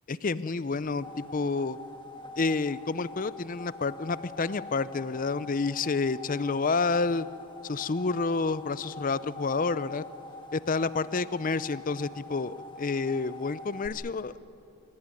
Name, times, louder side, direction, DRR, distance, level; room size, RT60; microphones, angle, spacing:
voice 1, 0.1-1.8 2.4-7.3 7.6-10.0 10.5-14.3, left 4 dB, 40° left, 16 dB, 0.5 m, -29 dB
sound 1, 0.7-13.9, left 2 dB, 20° left, 1.7 m, -45 dB
27.0 x 17.0 x 9.7 m, 2.7 s
head